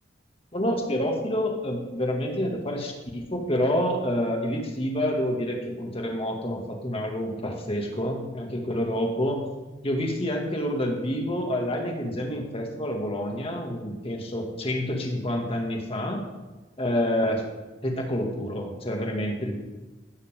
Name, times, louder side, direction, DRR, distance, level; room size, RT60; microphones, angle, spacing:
voice 1, 0.5-9.4 9.8-16.2 16.8-17.4 17.8-19.6, equal, 30° left, 1 dB, 2.4 m, -28 dB
16.0 x 13.0 x 3.8 m, 1.2 s
head